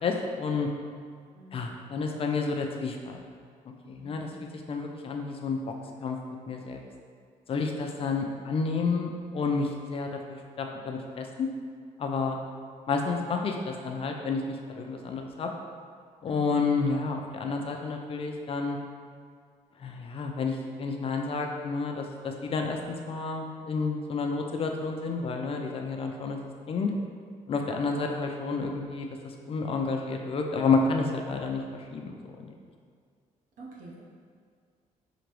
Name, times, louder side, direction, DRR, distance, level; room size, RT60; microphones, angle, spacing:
voice 1, 0.0-0.7 1.5-3.2 3.6-5.8 6.0-6.2 6.5-6.8 7.5-11.5 12.0-12.4 12.9-15.5 16.2-18.8 19.8-22.8 23.1-26.4 26.7-26.9 27.5-32.5, left 4 dB, 45° left, 2 dB, 0.5 m, -30 dB
voice 2, 1.4-1.8 4.0-4.7 7.5-8.1 16.2-16.6 33.6-34.0, right 2 dB, 80° right, -3 dB, 0.9 m, -47 dB
5.0 x 2.9 x 3.0 m, 2.1 s
cardioid pair, 105°, 14 cm